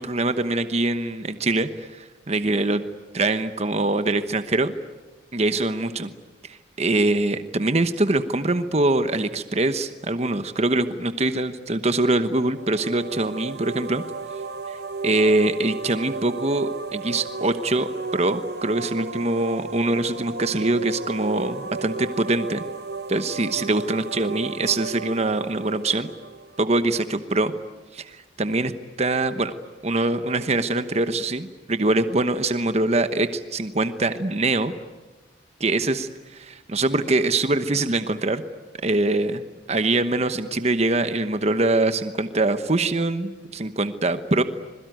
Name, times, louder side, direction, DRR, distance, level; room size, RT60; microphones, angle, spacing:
voice 1, 0.0-2.8 3.1-4.7 5.3-6.1 6.5-14.0 14.7-14.8 15.0-22.6 23.1-26.1 26.6-27.5 27.9-28.7 29.0-29.5 29.8-34.7 35.6-38.4 38.8-44.4, right 2 dB, 35° right, 10 dB, 1.1 m, -23 dB
sound 1, 12.4-27.1, right 3 dB, 60° right, 1.3 m, -34 dB
26.5 x 21.5 x 9.3 m, 1.2 s
head